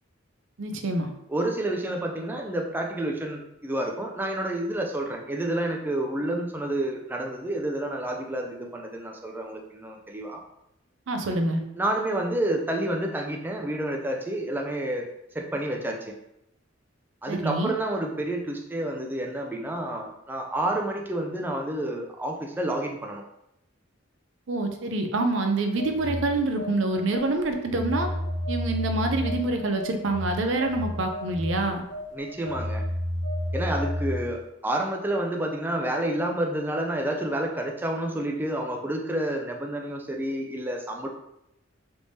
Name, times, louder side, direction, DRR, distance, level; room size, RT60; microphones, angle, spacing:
voice 1, 0.6-1.1 11.1-11.6 17.3-17.7 24.5-28.1 28.5-31.8, right 2 dB, 70° right, 5 dB, 0.5 m, -26 dB
voice 2, 1.3-10.4 11.8-15.1 15.3-16.1 17.2-23.2 32.1-32.8 33.5-41.1, right 1 dB, 10° right, 1 dB, 0.4 m, -29 dB
Telephone, 25.8-34.4, equal, 60° left, 0.7 m, -31 dB
3.4 x 3.2 x 2.6 m, 0.81 s
head